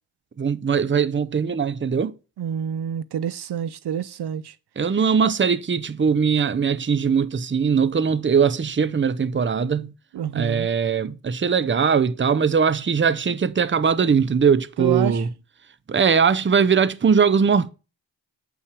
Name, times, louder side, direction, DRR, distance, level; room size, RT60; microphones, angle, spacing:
voice 1, 0.4-2.1 4.8-9.9 10.3-15.3 15.9-17.7, right 6 dB, 30° right, 0.6 m, -20 dB
voice 2, 2.4-4.5 10.1-10.7 14.8-15.2, right 9 dB, 65° right, 0.5 m, -28 dB
8.3 x 5.8 x 4.7 m
cardioid pair, 65°, 43 cm